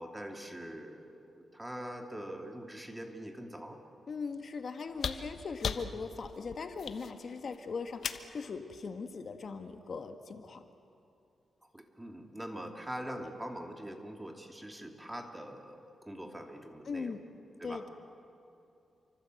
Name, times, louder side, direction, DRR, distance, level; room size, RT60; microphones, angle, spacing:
voice 1, 0.0-3.8 11.7-17.2 17.6-17.9, equal, 10° right, 3 dB, 2.8 m, -43 dB
voice 2, 4.1-10.6 16.8-17.2 17.6-17.9, left 5 dB, 55° left, 6 dB, 1.6 m, -40 dB
sound 1, 4.9-8.4 9.8-9.9, left 7 dB, 70° left, 1.2 m, -38 dB
29.0 x 24.5 x 7.9 m, 2.6 s
cardioid pair, 95°, 0 cm